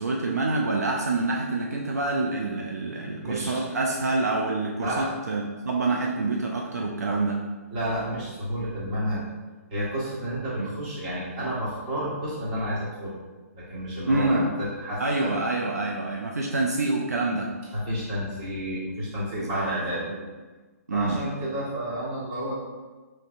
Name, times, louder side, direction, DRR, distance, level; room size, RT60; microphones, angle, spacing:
voice 1, 0.0-7.4 10.6-10.7 14.0-14.6 15.0-17.5 19.5-20.3 20.9-21.2, right 2 dB, 80° right, -1 dB, 0.4 m, -27 dB
voice 2, 3.2-3.6 4.8-5.1 7.7-9.2 9.7-13.2 13.5-15.4 17.7-20.0 20.9-22.5, equal, 35° right, -7 dB, 1.5 m, -30 dB
3.8 x 3.3 x 2.5 m, 1.3 s
figure-of-eight pair, 125°, 8 cm